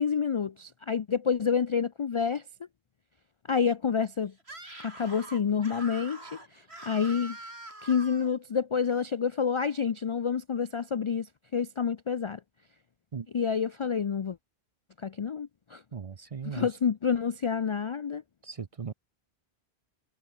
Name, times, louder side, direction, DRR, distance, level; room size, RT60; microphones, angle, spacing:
voice 1, 0.0-2.4 3.5-4.3 4.8-6.4 6.8-7.4 7.8-12.4 13.3-14.4 15.0-15.8 16.4-18.2, left 6 dB, 50° left, 0.4 m, -28 dB
Screaming, 4.4-8.4, right 1 dB, 80° right, 6.2 m, -44 dB
voice 2, 15.9-16.7 18.4-18.9, right 6 dB, 40° right, 0.6 m, -37 dB
omnidirectional pair, 1.1 m